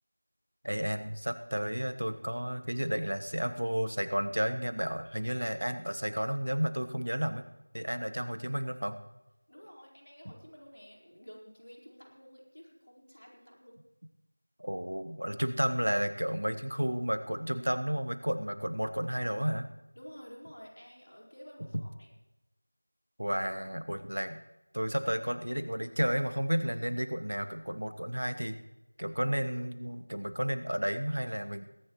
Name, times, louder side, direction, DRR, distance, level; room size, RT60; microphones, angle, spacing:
voice 1, 0.6-7.4 7.7-9.0 14.6-19.7 23.2-24.4 24.7-28.6 29.0-31.6, equal, 75° right, 9 dB, 1.3 m, -32 dB
voice 2, 9.5-13.8 19.9-22.1, equal, 75° left, -2 dB, 4.7 m, -51 dB
22.0 x 14.0 x 3.1 m, 0.97 s
figure-of-eight pair, 175°, 0 cm